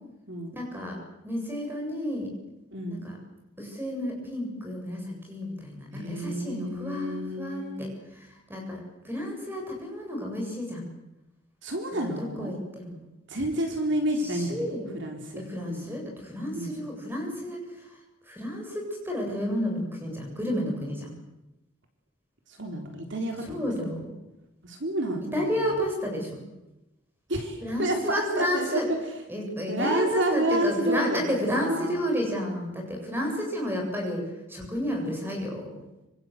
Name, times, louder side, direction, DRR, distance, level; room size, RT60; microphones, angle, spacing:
voice 1, 0.5-1.0 1.2-2.3 2.9-3.2 3.6-10.9 12.2-13.0 14.2-14.9 15.3-18.0 18.2-21.2 23.4-24.1 25.3-26.4 27.6-28.9 29.3-35.8, equal, 10° right, 1 dB, 8.0 m, -31 dB
voice 2, 2.7-3.1 5.9-8.0 11.6-12.5 13.3-15.9 16.5-16.8 22.6-23.7 24.6-25.6 27.3-29.0 29.7-31.2 31.6-32.0, right 1 dB, 60° right, 3 dB, 3.9 m, -30 dB
26.0 x 26.0 x 8.1 m, 0.97 s
head